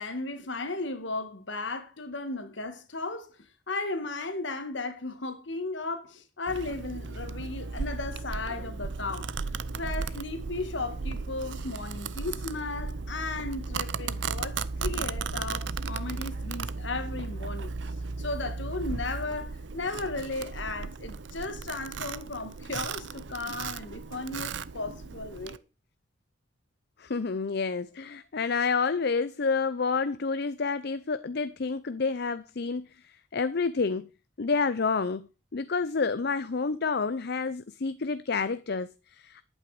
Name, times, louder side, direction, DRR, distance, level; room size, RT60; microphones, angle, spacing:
voice 1, 0.0-3.4 3.7-9.3 9.8-17.7 18.2-25.6, left 3 dB, 75° left, 1.9 m, -35 dB
Domestic sounds home sounds, 6.5-25.6, right 4 dB, 70° right, 0.7 m, -35 dB
voice 2, 27.0-34.1 34.4-39.4, left 4 dB, 60° left, 0.6 m, -29 dB
11.0 x 9.0 x 5.0 m
head